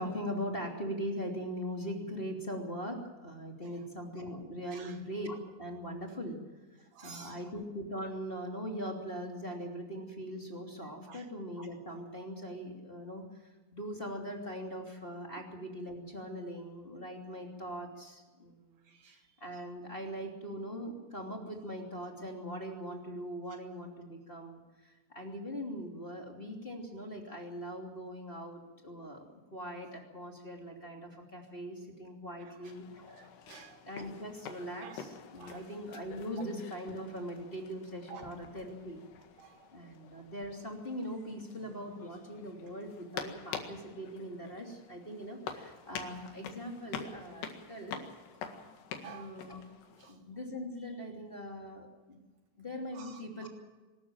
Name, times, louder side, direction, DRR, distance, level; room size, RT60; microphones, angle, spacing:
voice 1, 0.0-6.4 6.8-18.8 19.4-33.0 33.6-39.0 39.7-48.0 49.0-49.6 50.1-52.2 52.6-53.5, equal, 20° left, 0 dB, 1.8 m, -41 dB
voice 2, 6.9-7.4 11.1-11.3 18.9-19.2 32.6-32.7 33.1-33.8 34.8-35.0 35.4-35.6 38.1-38.3 39.4-39.7 49.0-49.3 50.0-50.1 52.9-53.2, right 7 dB, 70° right, 6 dB, 2.5 m, -50 dB
sound 1, 32.6-50.1, left 7 dB, 60° left, 3.6 m, -47 dB
24.5 x 13.5 x 9.0 m, 1.2 s
omnidirectional pair, 5.8 m